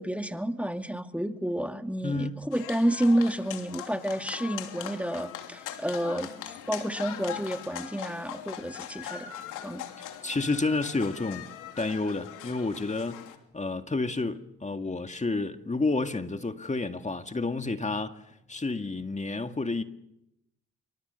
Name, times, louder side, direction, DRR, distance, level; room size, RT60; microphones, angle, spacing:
voice 1, 0.0-9.3 9.6-9.8, right 1 dB, 5° right, 2.1 m, -30 dB
voice 2, 2.0-2.4 10.0-11.5 11.8-13.2 13.5-18.2 18.5-19.8, left 3 dB, 25° left, 2.0 m, -30 dB
sound 1, 2.5-13.4, left 10 dB, 80° left, 3.1 m, -41 dB
28.5 x 25.0 x 7.0 m
supercardioid pair, 55°, 31 cm